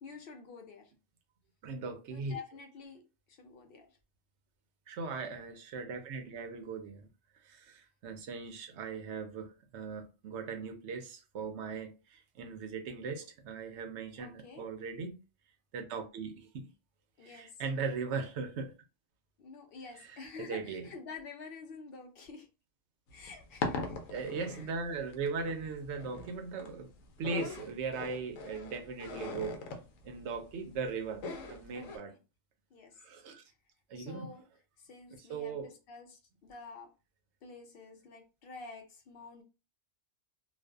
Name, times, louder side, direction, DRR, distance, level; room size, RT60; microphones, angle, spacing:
voice 1, 0.0-0.9 2.1-4.0 14.2-14.7 17.2-17.5 19.4-22.5 23.1-23.9 24.5-24.7 31.7-31.9 32.7-33.0 34.0-34.4 34.8-36.9 37.4-39.4, left 4 dB, 55° left, 0.8 m, -49 dB
voice 2, 1.6-2.4 4.9-7.1 7.3-15.2 15.7-16.7 17.2-18.8 20.0-20.9 24.1-26.9 27.2-29.6 30.0-32.1 33.0-33.4 33.9-34.3 35.2-35.7, right 4 dB, 70° right, 0.8 m, -39 dB
sound 1, 23.1-32.0, left 3 dB, 85° left, 1.0 m, -41 dB
2.5 x 2.3 x 2.2 m
omnidirectional pair, 1.3 m